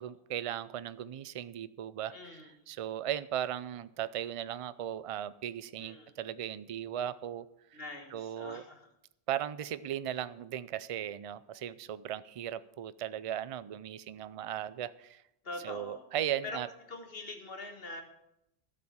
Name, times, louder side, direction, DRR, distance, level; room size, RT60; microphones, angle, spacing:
voice 1, 0.0-7.8 8.1-8.6 9.3-15.2 15.6-16.7, right 10 dB, 60° right, 16 dB, 0.3 m, -37 dB
voice 2, 2.1-2.5 5.8-6.1 7.7-8.9 15.4-16.0 16.4-16.6 16.9-18.0, left 2 dB, 60° left, 4 dB, 1.8 m, -43 dB
12.0 x 7.5 x 7.2 m, 0.84 s
omnidirectional pair, 1.1 m